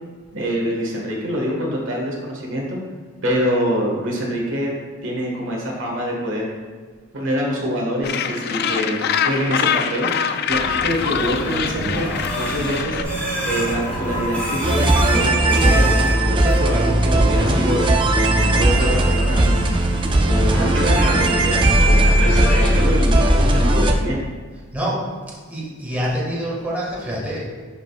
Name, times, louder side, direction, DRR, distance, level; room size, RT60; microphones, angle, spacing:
voice 1, 0.3-2.8 3.2-4.7 5.0-6.5 7.1-10.1 10.5-12.1 12.3-13.0 13.4-17.8 18.2-19.8 20.3-24.2, equal, 65° right, -2 dB, 1.5 m, -25 dB
Gull seagull, 8.0-13.0, left 7 dB, 50° left, 0.4 m, -24 dB
sound 1, 10.5-22.9, right 1 dB, 10° left, 2.1 m, -28 dB
sound 2, 14.6-23.9, right 1 dB, 25° right, 0.5 m, -17 dB
voice 2, 25.5-27.5, equal, 10° right, -6 dB, 1.6 m, -26 dB
11.0 x 5.0 x 2.3 m, 1.5 s
head